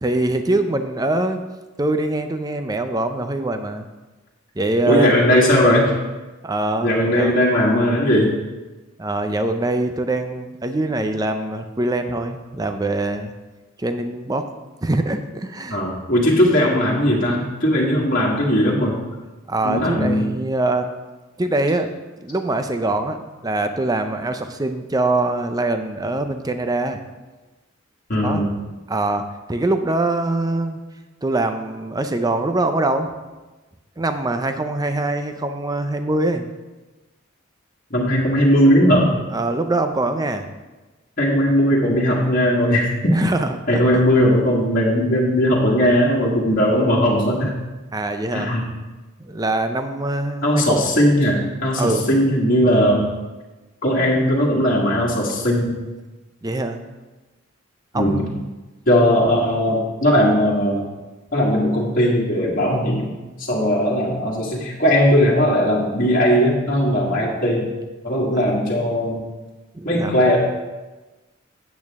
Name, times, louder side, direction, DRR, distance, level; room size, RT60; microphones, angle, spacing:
voice 1, 0.0-1.4 1.8-3.9 4.6-5.1 6.4-7.4 9.0-13.3 13.8-14.4 14.8-15.8 19.5-20.9 21.4-21.9 22.2-27.0 28.2-28.5 28.9-30.8 31.2-33.1 34.0-36.5 39.3-40.5 43.1-43.8 47.9-48.6 49.2-50.8 51.8-52.0 56.4-56.8 57.9-58.4 69.7-70.2, right 2 dB, 20° right, 8 dB, 0.5 m, -23 dB
voice 2, 4.8-5.9 6.8-8.4 15.7-19.0 19.6-20.3 28.1-28.5 37.9-39.1 41.2-43.2 43.7-47.5 48.3-48.6 50.4-53.0 53.8-55.7 57.9-58.2 58.9-60.9 61.3-63.1 63.4-67.7 68.0-69.2 69.8-70.4, equal, 45° left, -5 dB, 1.7 m, -18 dB
8.8 x 8.2 x 3.6 m, 1.2 s
head